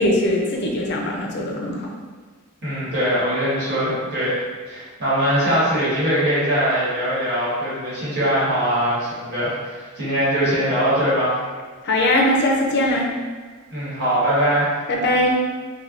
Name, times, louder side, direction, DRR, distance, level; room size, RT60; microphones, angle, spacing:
voice 1, 0.0-1.9 11.8-13.1 14.9-15.4, left 1 dB, 50° left, 0 dB, 0.5 m, -20 dB
voice 2, 2.6-4.4 4.7-11.3 13.7-14.7, equal, 50° right, -10 dB, 1.5 m, -21 dB
3.2 x 2.2 x 2.5 m, 1.5 s
head